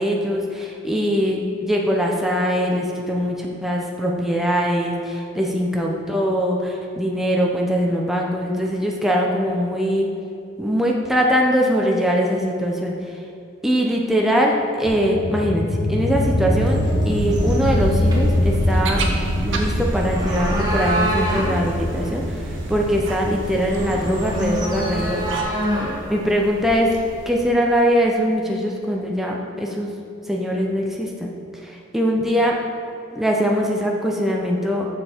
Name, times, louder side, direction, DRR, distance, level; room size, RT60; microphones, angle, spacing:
voice 1, 0.0-10.1 10.6-13.2 13.6-19.0 19.4-25.3 26.1-26.9 27.3-29.9 30.3-31.3 31.6-32.5 33.1-34.9, equal, ahead, -1 dB, 0.6 m, -22 dB
sound 1, 14.9-25.9, left 1 dB, 75° left, 1.0 m, -25 dB
sound 2, 16.7-27.5, right 1 dB, 20° right, 1.3 m, -28 dB
sound 3, 17.1-25.4, right 1 dB, 75° right, 0.9 m, -28 dB
6.7 x 6.7 x 4.3 m, 2.7 s
head